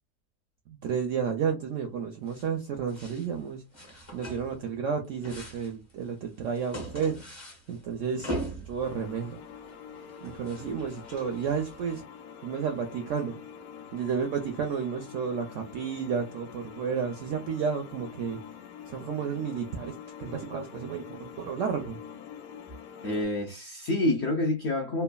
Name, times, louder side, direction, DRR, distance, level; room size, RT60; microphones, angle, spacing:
voice 1, 0.7-3.6 4.1-7.2 7.7-8.3 8.7-9.4 10.2-12.0 12.4-13.3 13.9-18.4 18.9-22.0, right 6 dB, 70° right, 0.7 m, -31 dB
sound 1, 2.3-2.6 2.9-3.3 3.7-4.8 5.0-12.0, right 1 dB, 25° left, 0.6 m, -41 dB
sound 2, 8.8-23.2, left 8 dB, 90° left, 1.2 m, -46 dB
voice 2, 23.0-25.0, left 1 dB, 70° left, 0.6 m, -27 dB
3.1 x 2.2 x 2.2 m
omnidirectional pair, 1.8 m